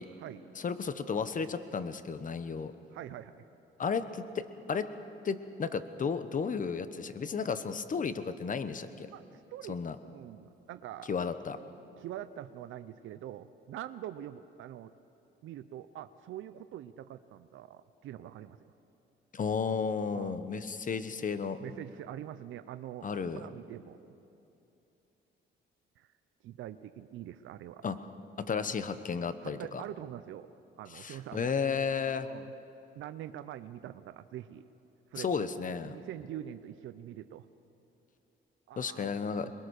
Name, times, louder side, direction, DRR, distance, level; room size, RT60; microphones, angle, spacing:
voice 1, 0.6-2.7 3.8-4.9 5.2-9.1 9.7-9.9 11.1-11.6 19.3-21.6 23.0-23.4 27.8-28.0 28.4-29.8 30.9-32.3 35.1-36.0 38.8-39.5, left 5 dB, 40° left, 12 dB, 1.2 m, -33 dB
voice 2, 2.9-3.5 9.1-11.2 12.0-14.9 15.4-18.6 20.1-20.4 21.6-23.1 23.3-24.1 26.0-26.1 26.4-27.8 29.4-30.5 30.8-31.5 32.2-32.5 33.0-34.6 35.1-35.5 35.8-37.5 38.7-39.1 39.4-39.5, right 12 dB, 80° right, 12 dB, 0.7 m, -44 dB
23.0 x 21.5 x 6.5 m, 2.8 s
cardioid pair, 90°, 20 cm